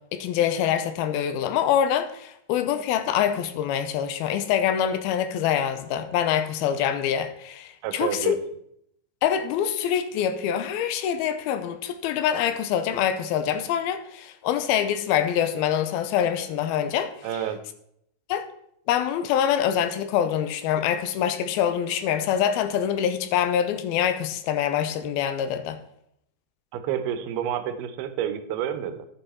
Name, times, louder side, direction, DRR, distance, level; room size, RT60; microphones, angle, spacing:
voice 1, 0.1-8.4 9.2-17.1 18.3-18.4 18.9-25.8, left 9 dB, 85° left, 2.5 m, -25 dB
voice 2, 7.8-8.4 17.2-17.6 26.7-29.1, right 10 dB, 85° right, 2.8 m, -29 dB
11.0 x 6.9 x 4.2 m
omnidirectional pair, 4.4 m